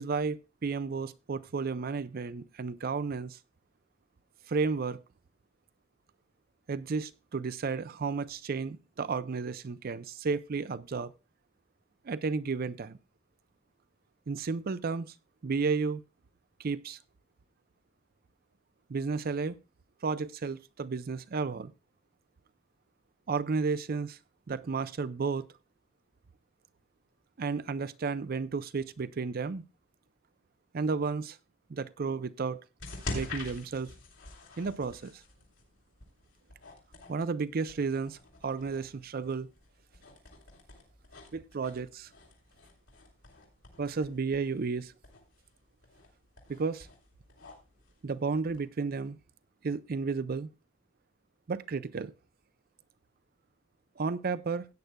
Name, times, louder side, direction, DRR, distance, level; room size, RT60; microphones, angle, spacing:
voice 1, 0.0-3.4 4.5-5.0 6.7-11.1 12.0-13.0 14.3-15.1 15.4-16.0 16.6-17.0 18.9-19.6 20.0-21.7 23.3-24.2 24.5-25.5 27.4-29.6 30.7-31.4 31.7-32.6 33.1-33.9 34.6-35.2 37.1-38.2 38.4-39.5 41.3-42.1 43.8-44.9 46.5-46.9 48.0-49.2 49.6-50.5 51.5-52.1 54.0-54.7, right 4 dB, 50° right, 0.5 m, -32 dB
sound 1, 32.8-48.6, left 2 dB, 70° left, 3.3 m, -47 dB
16.5 x 9.2 x 2.2 m
head